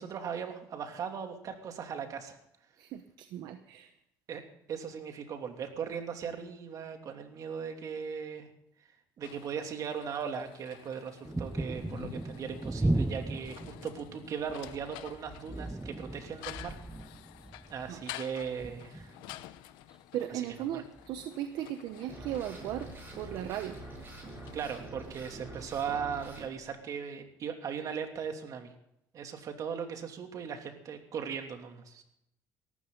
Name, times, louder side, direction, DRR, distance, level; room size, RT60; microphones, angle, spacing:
voice 1, 0.0-2.4 4.3-4.4 4.7-8.5 9.2-16.8 17.7-19.1 20.7-20.8 24.5-28.7 29.1-32.0, right 7 dB, 50° right, 4 dB, 2.9 m, -38 dB
voice 2, 2.8-3.9 17.9-18.0 20.1-22.9 23.2-23.8, right 11 dB, 75° right, 8 dB, 1.1 m, -37 dB
sound 1, 9.2-24.8, left 15 dB, 85° left, 0.9 m, -50 dB
sound 2, 11.2-19.6 20.9-21.3 23.9-24.0 24.4-24.5, right 2 dB, 10° right, 0.7 m, -37 dB
sound 3, 22.1-26.5, right 2 dB, 30° right, 7.9 m, -45 dB
19.0 x 14.5 x 4.0 m, 0.76 s
cardioid pair, 105°, 7 cm